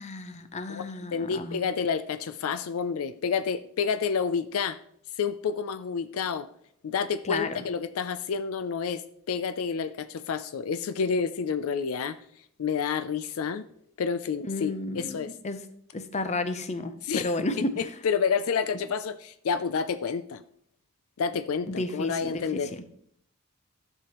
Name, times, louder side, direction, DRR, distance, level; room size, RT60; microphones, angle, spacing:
voice 1, 0.0-1.6 7.2-7.7 14.4-15.7 15.9-17.9 21.7-22.8, left 2 dB, 30° left, 10 dB, 0.6 m, -32 dB
voice 2, 1.1-4.8 5.2-6.5 6.8-9.0 9.3-12.2 12.6-13.6 14.0-15.3 17.0-17.3 17.8-20.4 21.2-22.7, left 6 dB, 75° left, 12 dB, 0.4 m, -29 dB
11.5 x 6.8 x 3.0 m, 0.67 s
head